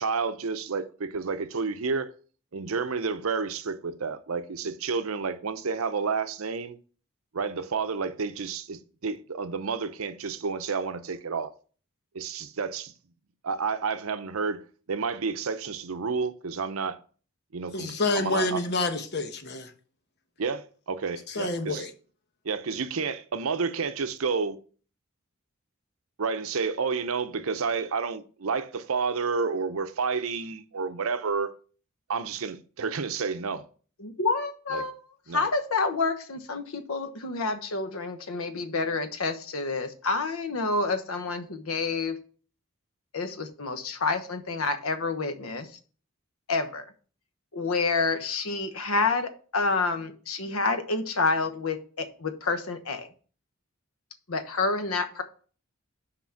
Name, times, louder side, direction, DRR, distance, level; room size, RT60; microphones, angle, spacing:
voice 1, 0.0-2.1 2.5-6.8 7.3-11.5 12.1-12.9 13.4-17.0 17.5-18.6 20.4-21.8 22.4-24.6 26.2-31.5 32.1-33.7 34.7-34.9 35.3-35.4, right 5 dB, 80° right, 0.7 m, -30 dB
voice 2, 17.7-19.7 21.3-21.9, left 2 dB, 50° left, 1.0 m, -28 dB
voice 3, 34.0-34.9 35.3-42.2 43.1-45.7 46.5-46.8 47.5-53.1 54.3-55.2, left 3 dB, 90° left, 1.0 m, -28 dB
5.9 x 5.0 x 5.7 m
head